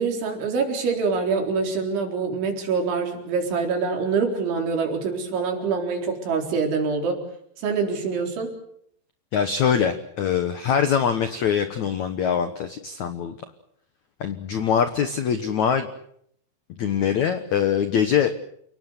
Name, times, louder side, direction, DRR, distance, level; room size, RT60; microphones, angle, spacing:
voice 1, 0.0-7.2 7.6-8.5, right 5 dB, 80° right, 2 dB, 6.5 m, -25 dB
voice 2, 9.3-13.3 14.2-15.9 16.8-18.5, left 7 dB, 80° left, 9 dB, 1.6 m, -23 dB
29.5 x 18.5 x 8.2 m, 0.71 s
omnidirectional pair, 5.3 m